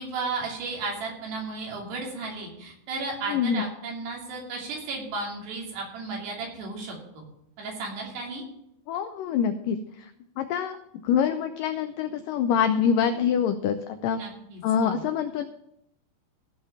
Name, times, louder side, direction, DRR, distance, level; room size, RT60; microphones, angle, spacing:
voice 1, 0.0-7.2 7.6-8.4 14.2-15.0, right 3 dB, 85° right, -1 dB, 4.9 m, -34 dB
voice 2, 3.3-3.6 8.9-10.1 10.4-10.8 11.0-13.8 14.0-14.2 14.6-15.5, left 7 dB, 90° left, 8 dB, 1.9 m, -25 dB
15.5 x 5.6 x 7.1 m, 0.78 s
omnidirectional pair, 4.7 m